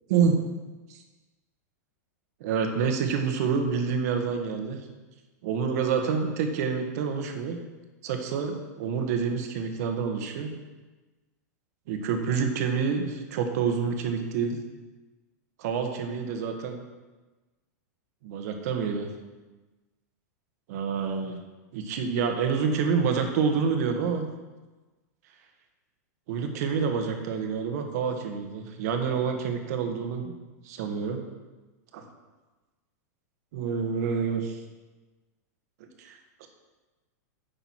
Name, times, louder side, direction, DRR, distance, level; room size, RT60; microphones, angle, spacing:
voice 1, 2.4-4.8 5.4-7.6 8.0-10.5 11.9-14.6 15.6-16.8 18.2-19.1 20.7-21.4 21.7-24.2 26.3-30.3 30.6-31.2 31.9-32.0 33.5-34.6 35.8-36.5, right 6 dB, 65° right, 4 dB, 1.6 m, -28 dB
10.0 x 6.7 x 4.7 m, 1.2 s
hypercardioid pair, 125°, 9 cm